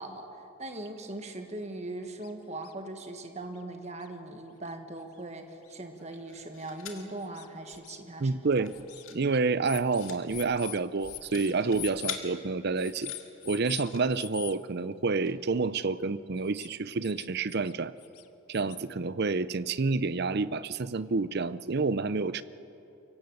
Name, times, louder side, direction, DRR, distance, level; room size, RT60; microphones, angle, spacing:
voice 1, 0.0-8.3 9.1-9.2, right 2 dB, 30° right, 6 dB, 1.4 m, -40 dB
sound 1, 2.2-2.3 2.6-2.7 3.6-3.7 4.0-4.1 4.7-4.8 5.7-5.8 6.1-6.2 6.9-8.0 8.7-9.1 9.6-12.2 12.8-13.9 14.1-14.6 16.4-16.7 17.0-17.7 18.0-18.8, left 14 dB, 90° left, 1.0 m, -43 dB
sound 2, 6.0-7.1 7.6-7.7 7.9-8.2 8.5-9.2 9.5-10.2 11.0-12.2 12.8-14.0 14.9-15.0 15.3-15.4, left 8 dB, 65° left, 2.1 m, -44 dB
voice 2, 8.2-8.7 9.1-13.1 13.5-17.9 18.5-22.4, right 4 dB, 45° right, 16 dB, 0.5 m, -29 dB
24.0 x 17.5 x 7.9 m, 2.9 s
head